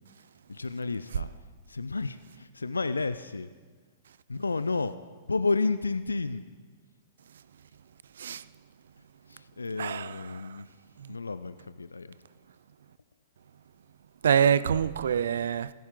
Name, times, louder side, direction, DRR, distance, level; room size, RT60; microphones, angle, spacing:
voice 1, 0.5-1.3 1.7-3.5 4.3-4.9 5.3-6.4 9.3-10.7 11.1-12.2, left 3 dB, 90° left, 0.4 m, -31 dB
voice 2, 9.8-10.2 10.4-10.6 11.0-11.2 14.2-15.7, right 8 dB, 70° right, 0.4 m, -26 dB
15.5 x 13.5 x 3.8 m
figure-of-eight pair, 110°, 0 cm